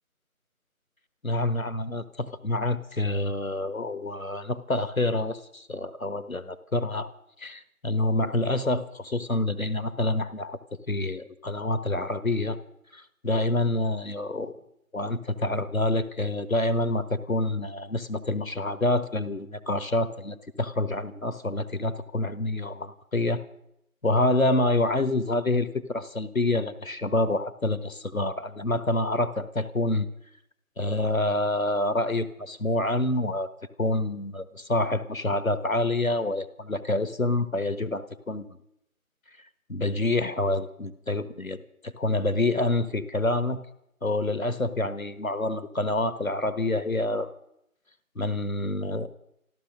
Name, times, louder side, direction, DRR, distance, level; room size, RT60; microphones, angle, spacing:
voice 1, 1.2-7.1 7.4-10.6 10.9-12.6 12.9-14.5 14.9-23.4 24.0-30.1 30.8-33.5 33.8-38.6 39.7-43.6 44.0-47.3 48.1-49.1, left 2 dB, 65° left, 13 dB, 1.4 m, -27 dB
14.5 x 13.0 x 6.5 m, 0.78 s
figure-of-eight pair, 175°, 43 cm